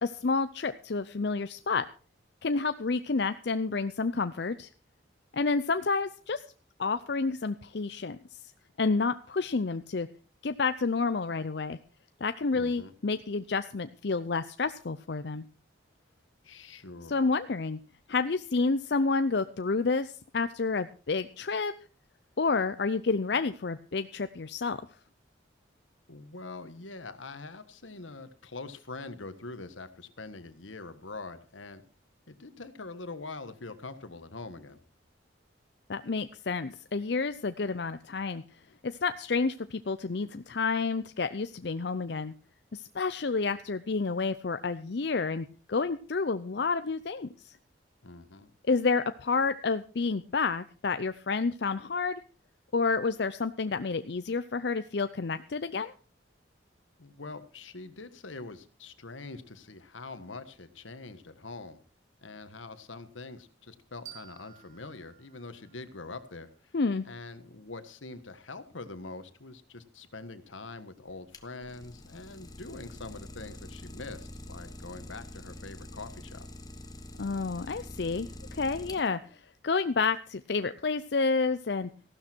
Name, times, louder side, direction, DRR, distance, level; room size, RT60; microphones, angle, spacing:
voice 1, 0.0-1.9 2.4-4.7 5.3-6.4 6.8-8.2 8.8-10.1 10.4-11.8 12.2-15.4 17.1-17.8 18.1-21.7 22.4-24.8 35.9-38.4 38.8-42.3 42.7-47.5 48.6-52.2 52.7-55.9 66.7-67.1 77.2-79.2 79.6-81.9, left 4 dB, 60° left, 11 dB, 0.6 m, -29 dB
voice 2, 12.5-12.9 16.4-17.3 26.1-31.8 32.3-34.8 48.0-48.5 57.0-61.8 62.2-66.7 67.0-76.5, left 3 dB, 85° left, 11 dB, 1.5 m, -44 dB
sound 1, 64.0-66.8, right 11 dB, 35° right, 2.5 m, -53 dB
Idling, 71.3-79.4, left 1 dB, 20° left, 1.3 m, -45 dB
15.5 x 12.5 x 4.5 m, 0.36 s
head